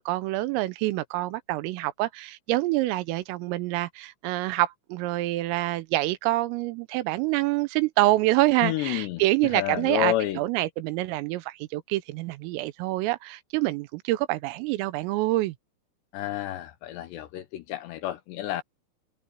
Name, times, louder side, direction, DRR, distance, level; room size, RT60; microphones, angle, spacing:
voice 1, 0.0-15.5, right 18 dB, 85° right, 3.5 m, -26 dB
voice 2, 8.6-9.2 9.5-10.4 16.1-18.6, left 14 dB, 75° left, 2.6 m, -30 dB
omnidirectional pair, 5.9 m